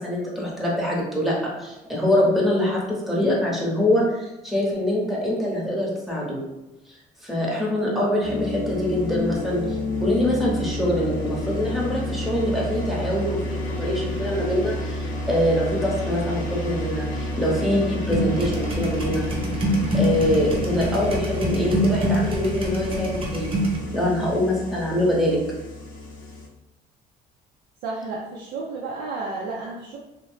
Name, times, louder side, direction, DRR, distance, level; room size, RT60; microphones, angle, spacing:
voice 1, 0.0-6.4 7.2-19.3 19.9-23.6 23.9-25.4, left 1 dB, ahead, -4 dB, 0.8 m, -24 dB
sound 1, 8.2-26.5, left 1 dB, 50° left, 0.7 m, -30 dB
sound 2, 18.1-23.8, right 1 dB, 30° right, 0.6 m, -25 dB
voice 2, 27.8-30.0, right 3 dB, 80° right, -4 dB, 0.5 m, -32 dB
2.7 x 2.0 x 3.1 m, 0.98 s
cardioid pair, 110°, 17 cm